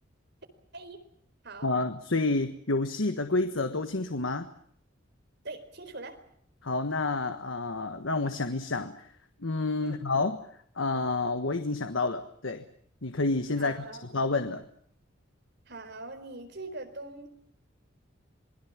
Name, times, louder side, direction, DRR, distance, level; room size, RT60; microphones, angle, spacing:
voice 1, 1.6-4.5 6.6-9.1 9.4-10.4 10.8-12.6 13.0-13.9 14.1-14.7, left 3 dB, 80° left, 9 dB, 1.4 m, -29 dB
voice 2, 5.4-6.2 9.8-10.0 13.6-14.1 15.7-17.3, right 2 dB, 60° right, 6 dB, 4.3 m, -42 dB
27.0 x 21.0 x 7.4 m, 0.63 s
head